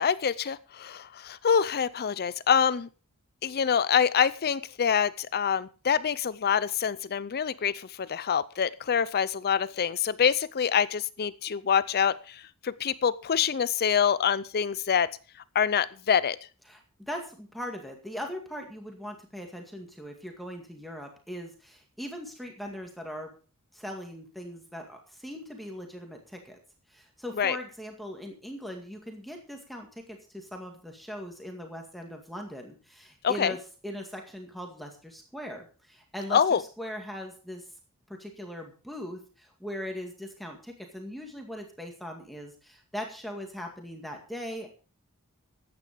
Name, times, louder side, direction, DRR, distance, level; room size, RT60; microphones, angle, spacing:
voice 1, 0.0-2.9 3.4-15.1 15.5-16.4 27.4-27.6 33.2-33.5 36.3-36.6, left 7 dB, 45° left, 17 dB, 0.5 m, -26 dB
voice 2, 16.7-23.3 23.7-26.6 26.9-33.6 33.8-37.6 38.1-44.7, equal, ahead, 2 dB, 2.1 m, -40 dB
15.0 x 9.6 x 5.1 m, 0.36 s
head